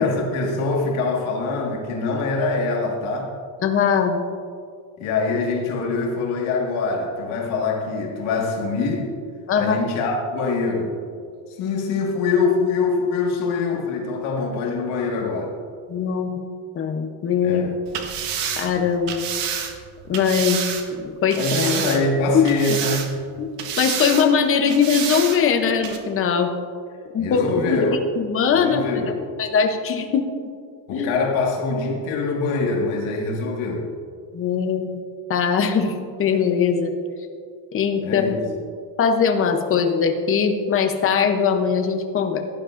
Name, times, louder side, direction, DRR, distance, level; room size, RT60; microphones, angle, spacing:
voice 1, 0.0-3.3 5.0-9.1 9.6-11.0 11.6-15.5 17.4-17.8 21.3-23.2 27.2-28.0 28.5-29.1 30.9-33.9 38.0-38.4, left 3 dB, 75° left, -1 dB, 1.8 m, -24 dB
voice 2, 3.6-4.2 9.5-9.8 15.9-16.3 16.7-17.6 18.6-19.2 20.1-20.6 20.9-21.4 21.7-21.9 22.3-22.4 23.4-23.5 23.8-26.5 27.1-28.9 29.4-30.3 30.9-31.1 34.3-35.0 35.3-36.9 37.7-38.3 39.0-42.4, left 6 dB, 30° left, 6 dB, 0.7 m, -21 dB
sound 1, 17.9-20.9 21.3-22.2 22.5-23.3 23.6-24.3 24.7-25.4 25.8-26.0, right 8 dB, 60° right, 1.2 m, -28 dB
16.5 x 10.0 x 2.5 m, 2.2 s
cardioid pair, 170°, 48 cm